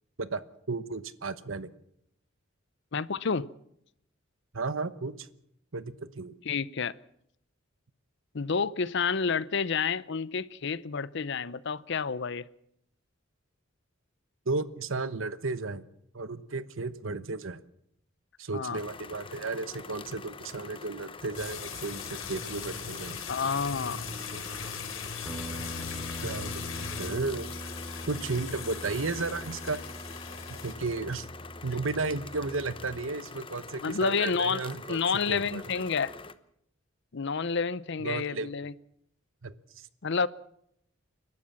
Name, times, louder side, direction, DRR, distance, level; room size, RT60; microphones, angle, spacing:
voice 1, 0.7-1.7 4.5-5.3 5.7-6.3 14.5-15.8 16.1-17.6 18.4-23.2 24.3-24.5 26.2-27.5 28.1-29.8 30.6-31.3 31.6-35.0 35.3-35.8 38.0-38.5 39.4-39.9, right 3 dB, 80° right, 1.1 m, -34 dB
voice 2, 2.9-3.5 6.4-7.0 8.3-12.4 18.5-18.8 23.3-24.0 33.8-34.6 34.9-36.1 37.1-38.7 40.0-40.3, left 5 dB, 65° left, 0.7 m, -29 dB
sound 1, 18.7-36.3, left 4 dB, 25° left, 0.9 m, -45 dB
Preparing water for tea, 21.3-30.7, left 6 dB, 85° left, 3.1 m, -40 dB
Guitar, 25.2-33.1, equal, 15° right, 3.1 m, -42 dB
29.5 x 12.0 x 7.3 m
head